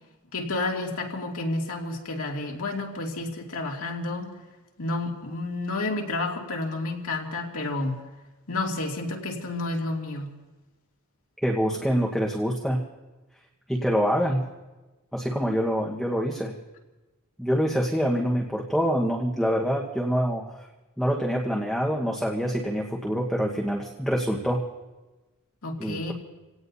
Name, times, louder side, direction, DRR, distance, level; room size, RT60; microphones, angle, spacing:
voice 1, 0.3-4.3 4.8-8.0 8.5-10.3 25.6-26.1, left 2 dB, 70° left, 0 dB, 2.5 m, -30 dB
voice 2, 11.4-12.8 13.7-14.4 15.1-16.5 17.4-20.4 21.0-24.6 25.8-26.1, equal, ahead, -3 dB, 1.3 m, -25 dB
27.5 x 17.5 x 2.8 m, 1.1 s
head